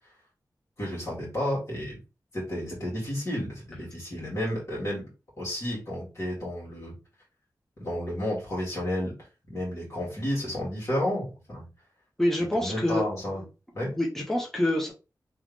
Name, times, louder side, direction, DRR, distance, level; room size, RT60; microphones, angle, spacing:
voice 1, 0.8-2.0 2.3-5.0 5.4-6.9 7.8-9.1 9.5-11.6 12.5-13.4 13.7-13.9, left 1 dB, 45° left, -6 dB, 2.2 m, -31 dB
voice 2, 12.2-13.1 14.0-14.9, left 1 dB, 5° left, -3 dB, 1.2 m, -26 dB
3.5 x 3.2 x 3.4 m, 0.31 s
wide cardioid pair, 85°, 7 cm